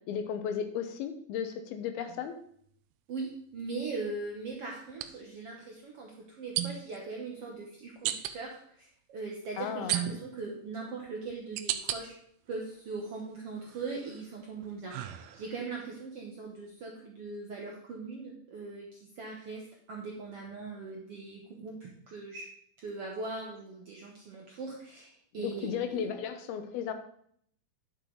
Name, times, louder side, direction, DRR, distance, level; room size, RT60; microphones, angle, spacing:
voice 1, 0.1-2.3 9.6-10.0 25.4-26.9, left 8 dB, 85° left, 8 dB, 2.8 m, -35 dB
sound 1, 2.1-2.3 4.9-5.1 6.6-7.0 8.0-8.4 9.9-10.4 11.1-12.0 12.5-13.2 13.7-15.7, right 12 dB, 85° right, 2.4 m, -35 dB
voice 2, 3.1-12.1 12.5-22.5 22.8-26.1, right 3 dB, 65° right, -2 dB, 1.5 m, -40 dB
10.5 x 6.8 x 3.9 m, 0.64 s
omnidirectional pair, 4.3 m